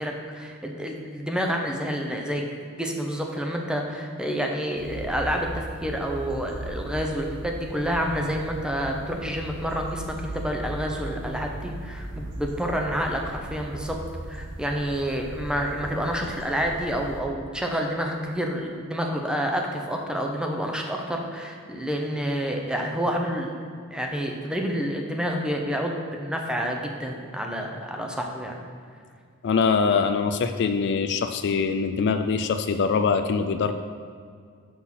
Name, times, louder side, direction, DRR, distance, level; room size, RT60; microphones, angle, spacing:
voice 1, 0.0-2.5 2.8-14.0 14.3-23.5 23.9-28.6, equal, 5° right, 1 dB, 0.7 m, -29 dB
sound 1, 4.7-17.2, right 1 dB, 60° right, 0.9 m, -38 dB
voice 2, 29.4-33.7, left 5 dB, 55° left, 8 dB, 0.4 m, -23 dB
6.1 x 6.0 x 5.8 m, 2.2 s
head